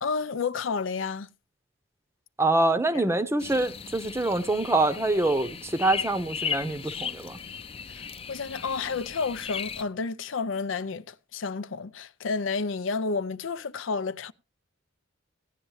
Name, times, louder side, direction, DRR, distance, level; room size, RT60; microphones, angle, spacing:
voice 1, 0.0-1.3 2.9-3.0 7.9-8.0 8.3-14.3, left 4 dB, 80° left, 0.6 m, -31 dB
voice 2, 2.4-7.4, right 2 dB, 15° right, 0.7 m, -25 dB
sound 1, 3.4-9.8, left 7 dB, 30° left, 0.6 m, -37 dB
16.5 x 9.9 x 3.1 m
head